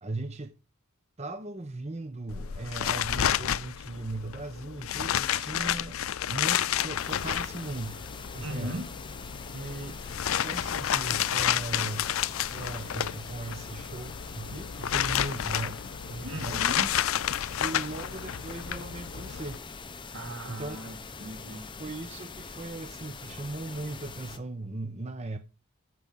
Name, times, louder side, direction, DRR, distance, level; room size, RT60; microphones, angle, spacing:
voice 1, 0.0-0.5 1.2-6.0 6.3-8.0 8.3-8.8 9.5-10.0 10.4-12.1 12.5-15.8 16.1-16.6 17.6-19.6 20.4-20.9 21.4-25.4, right 2 dB, 30° right, 0.8 m, -38 dB
sound 1, 2.3-19.6, left 10 dB, 80° left, 0.5 m, -31 dB
sound 2, 7.0-24.4, left 4 dB, 25° left, 0.8 m, -43 dB
voice 2, 8.4-8.9 16.2-16.9 20.1-21.7, right 1 dB, 80° right, 3.0 m, -38 dB
13.5 x 6.2 x 5.5 m
head